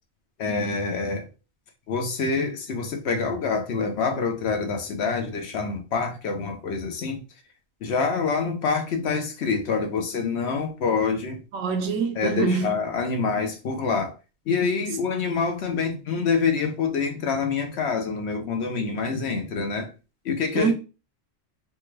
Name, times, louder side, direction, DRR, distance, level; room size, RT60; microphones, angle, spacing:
voice 1, 0.4-1.3 1.9-7.2 7.8-11.4 12.2-14.1 14.5-19.9 20.2-20.7, left 5 dB, 65° left, 0.9 m, -26 dB
voice 2, 11.5-12.7 20.5-20.7, right 5 dB, 90° right, 1.1 m, -24 dB
3.4 x 2.2 x 3.1 m
omnidirectional pair, 1.3 m